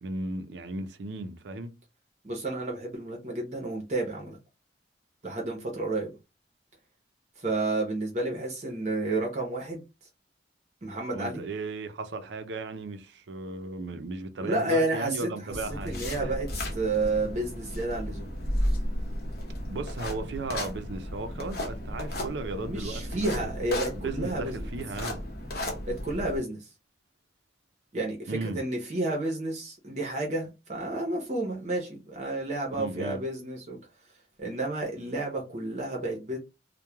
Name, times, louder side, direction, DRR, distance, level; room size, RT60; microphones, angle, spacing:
voice 1, 0.0-1.7 11.1-16.3 19.6-23.5 24.0-25.2 28.3-28.6 32.7-33.2, right 3 dB, 75° right, 0.5 m, -36 dB
voice 2, 2.2-4.4 5.2-6.2 7.4-9.8 10.8-11.4 14.4-15.3 15.8-18.3 22.6-24.7 25.9-26.6 27.9-33.8 34.4-36.4, right 2 dB, 40° right, 0.7 m, -31 dB
sound 1, 15.5-26.4, left 1 dB, 55° left, 0.8 m, -34 dB
3.0 x 2.1 x 2.2 m
head